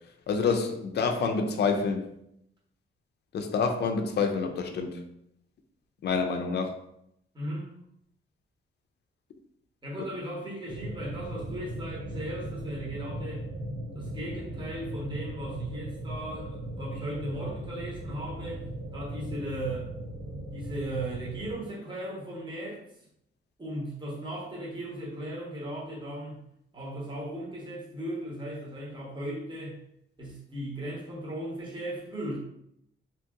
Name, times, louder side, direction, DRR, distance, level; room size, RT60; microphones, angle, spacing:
voice 1, 0.3-2.1 3.3-5.0 6.0-6.8, left 5 dB, 55° left, 0.4 m, -27 dB
voice 2, 7.3-7.7 9.8-13.5 13.9-18.6 18.9-19.9 20.5-22.8 23.6-26.4 26.7-29.8 30.2-32.4, right 1 dB, 20° right, 0.9 m, -37 dB
sound 1, 10.7-21.5, right 1 dB, 80° right, 0.7 m, -38 dB
2.9 x 2.7 x 2.3 m
wide cardioid pair, 120°, 21 cm